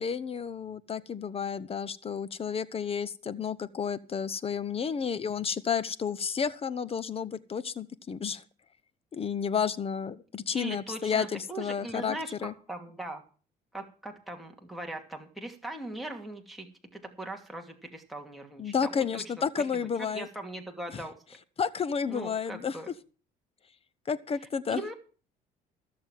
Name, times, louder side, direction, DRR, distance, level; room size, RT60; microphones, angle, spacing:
voice 1, 0.0-8.4 9.1-12.2 12.4-12.5 18.6-20.3 20.9-21.0 21.6-22.8 24.1-24.8, left 6 dB, 35° left, 17 dB, 0.9 m, -31 dB
voice 2, 10.5-13.2 13.7-16.7 16.9-21.1 22.1-22.9 24.7-24.9, right 1 dB, ahead, 1 dB, 2.6 m, -40 dB
15.5 x 6.9 x 7.5 m, 0.37 s
cardioid pair, 110°, 17 cm